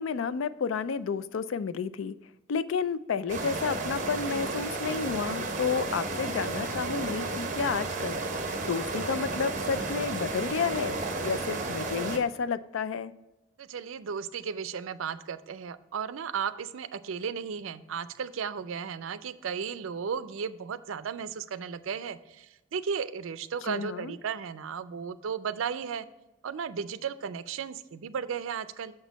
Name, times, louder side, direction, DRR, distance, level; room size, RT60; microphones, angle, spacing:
voice 1, 0.0-2.1 2.5-8.2 8.6-11.0 11.2-13.1 23.7-24.1, left 5 dB, 80° left, 15 dB, 0.4 m, -31 dB
sound 1, 3.3-12.2, right 3 dB, 40° right, 0.9 m, -33 dB
voice 2, 13.6-26.1 26.4-28.9, right 6 dB, 85° right, 14 dB, 0.4 m, -35 dB
6.5 x 6.2 x 4.0 m, 1.0 s
head